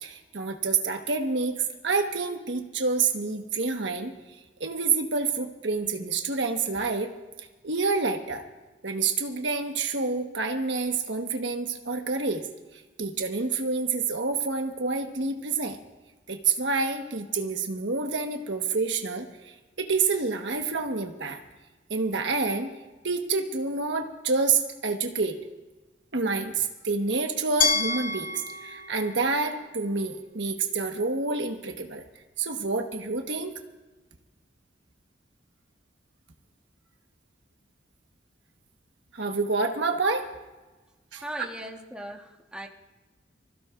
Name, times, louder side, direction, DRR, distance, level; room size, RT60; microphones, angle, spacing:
voice 1, 0.0-4.1 4.6-7.1 7.6-8.4 8.8-15.8 16.3-21.4 21.9-22.7 23.0-25.4 26.1-32.0 32.4-33.5 39.1-40.3 41.1-41.5, right 4 dB, 75° right, 4 dB, 1.4 m, -28 dB
Glass, 27.6-30.5, left 4 dB, 45° left, 1.1 m, -30 dB
voice 2, 41.2-42.7, right 1 dB, 5° right, 0 dB, 1.5 m, -38 dB
25.5 x 16.0 x 2.6 m, 1.2 s
head